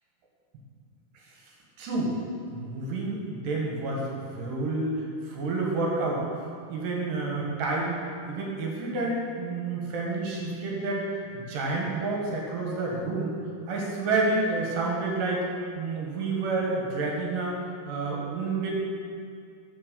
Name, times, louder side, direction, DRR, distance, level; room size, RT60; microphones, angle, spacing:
voice 1, 1.8-2.1 2.5-6.2 6.7-8.0 8.3-11.0 11.3-13.4 13.7-15.4 15.8-17.6 17.9-18.7, right 3 dB, 65° right, -2 dB, 2.7 m, -29 dB
7.9 x 5.5 x 6.8 m, 2.2 s
omnidirectional pair, 4.8 m